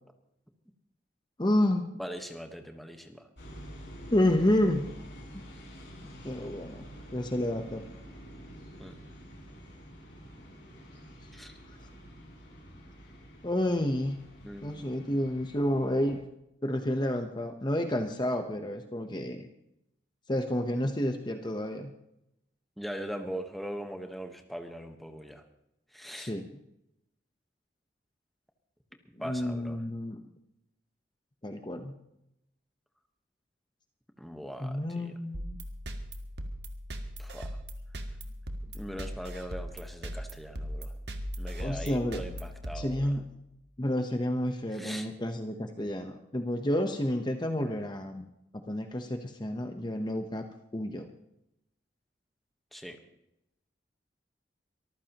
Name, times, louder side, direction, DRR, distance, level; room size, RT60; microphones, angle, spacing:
voice 1, 1.4-1.9 4.1-4.9 5.3-5.4 6.0-6.9 7.1-7.8 13.4-14.2 14.6-16.2 16.6-19.5 20.3-21.9 26.2-26.4 29.2-30.2 31.4-31.9 34.6-35.6 41.6-42.2 42.7-43.3 43.8-48.3 48.7-50.4 50.7-51.1, left 1 dB, 25° left, 5 dB, 0.9 m, -30 dB
voice 2, 2.0-3.3 8.8-8.9 11.3-11.5 14.4-14.7 22.8-25.4 25.9-26.3 29.2-29.8 34.2-35.1 37.2-37.5 38.6-40.9 41.4-43.1 44.7-45.1 52.7-53.0, equal, ahead, 5 dB, 1.2 m, -41 dB
sound 1, 3.4-16.2, equal, 90° left, 7.1 m, -48 dB
sound 2, 35.3-43.5, equal, 65° right, 1.5 m, -39 dB
24.0 x 14.5 x 3.0 m, 0.82 s
head